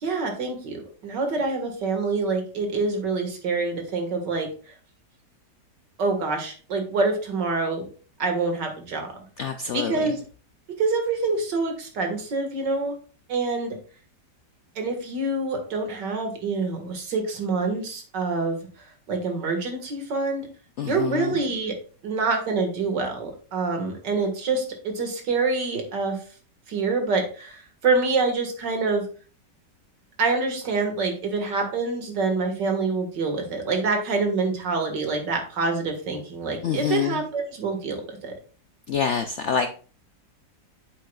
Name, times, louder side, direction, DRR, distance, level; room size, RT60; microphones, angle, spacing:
voice 1, 0.0-4.5 6.0-7.9 8.2-9.1 9.7-10.2 10.8-12.9 13.3-13.8 14.8-20.5 20.8-21.7 22.0-26.2 26.7-29.1 30.2-38.3, right 3 dB, 80° right, 4 dB, 2.4 m, -26 dB
voice 2, 9.4-10.1 20.8-21.4 36.6-37.2 38.9-39.7, left 7 dB, 70° left, 8 dB, 0.6 m, -26 dB
8.6 x 7.7 x 2.3 m, 0.39 s
omnidirectional pair, 1.9 m